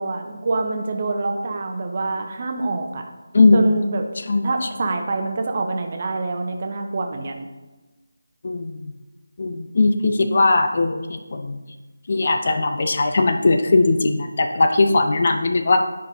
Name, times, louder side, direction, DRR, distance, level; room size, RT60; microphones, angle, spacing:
voice 1, 0.0-3.0 3.5-4.1 4.4-7.5, right 3 dB, 35° right, 4 dB, 0.7 m, -26 dB
voice 2, 3.3-3.7 4.3-4.4 8.4-8.9 9.4-11.6 12.1-15.8, left 3 dB, 40° left, 6 dB, 0.5 m, -19 dB
10.5 x 5.1 x 2.8 m, 1.2 s
figure-of-eight pair, 160°, 0 cm